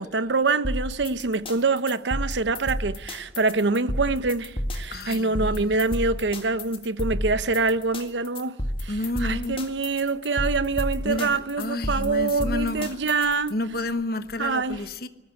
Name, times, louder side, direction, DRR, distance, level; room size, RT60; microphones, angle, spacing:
voice 1, 0.0-8.6 8.8-13.5 14.4-14.8, right 3 dB, 85° right, 0.9 m, -25 dB
sound 1, 0.6-13.5, equal, 30° left, 2.0 m, -31 dB
voice 2, 4.9-5.8 8.9-9.6 11.0-13.0 13.5-15.1, left 2 dB, 60° left, 1.1 m, -30 dB
20.0 x 14.5 x 10.0 m
head